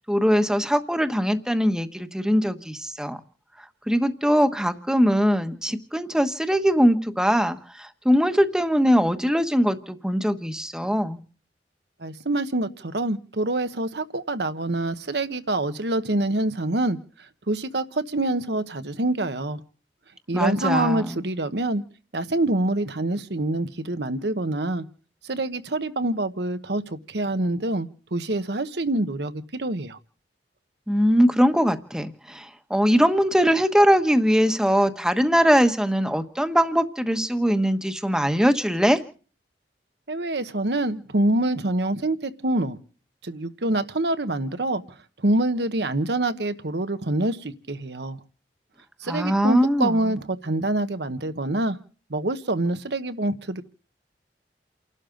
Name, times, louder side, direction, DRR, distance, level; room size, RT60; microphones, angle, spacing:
voice 1, 0.1-3.2 3.6-11.2 20.3-21.2 30.9-39.0 49.1-50.2, equal, 5° right, 8 dB, 1.1 m, -21 dB
voice 2, 12.0-17.0 17.5-19.6 20.3-21.8 22.1-24.9 25.2-30.0 40.1-42.8 43.2-44.8 45.2-48.2 49.0-51.8 52.1-53.6, right 2 dB, 75° right, 11 dB, 1.1 m, -26 dB
29.5 x 12.0 x 3.8 m, 0.41 s
head